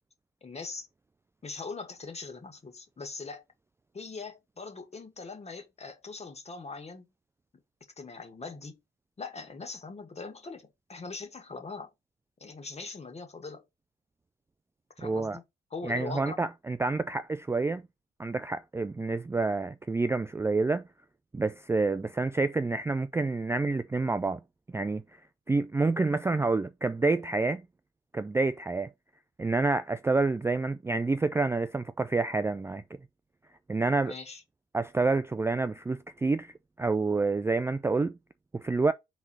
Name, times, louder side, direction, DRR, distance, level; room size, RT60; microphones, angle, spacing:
voice 1, 0.4-0.9 1.4-3.4 3.9-7.1 8.0-8.8 9.2-11.9 12.4-13.6 15.0-15.4 15.7-16.4 34.0-34.4, left 4 dB, 35° left, 2.0 m, -41 dB
voice 2, 15.0-15.4 15.8-17.8 18.2-20.8 21.3-24.4 24.7-25.0 25.5-27.6 28.1-28.9 29.4-32.8 33.7-34.1 34.7-36.5 36.8-38.1 38.5-38.9, right 3 dB, 15° right, 0.3 m, -28 dB
4.7 x 3.9 x 5.5 m
cardioid pair, 90°, 20 cm